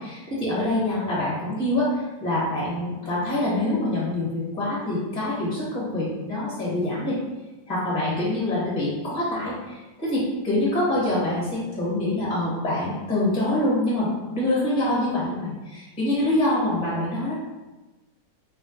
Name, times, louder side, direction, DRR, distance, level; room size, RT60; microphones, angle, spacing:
voice 1, 0.0-7.2 7.7-17.4, left 1 dB, 30° left, -6 dB, 0.9 m, -25 dB
2.8 x 2.1 x 3.8 m, 1.1 s
omnidirectional pair, 1.9 m